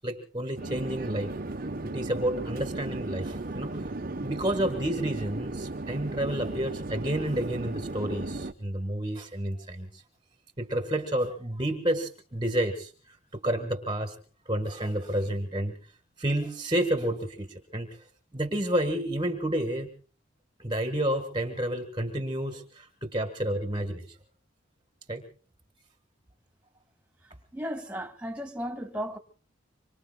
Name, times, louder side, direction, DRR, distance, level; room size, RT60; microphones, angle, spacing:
voice 1, 0.0-1.3 1.8-3.9 4.2-10.0 10.6-14.2 14.5-15.7 16.2-18.0 18.3-19.9 20.6-24.2 25.1-25.2, right 1 dB, 20° right, 1.5 m, -30 dB
Conversation / Chatter / Fixed-wing aircraft airplane, 0.6-8.5, right 2 dB, 45° right, 1.0 m, -35 dB
voice 2, 27.5-29.2, equal, 5° right, 2.0 m, -35 dB
26.0 x 24.0 x 2.3 m
head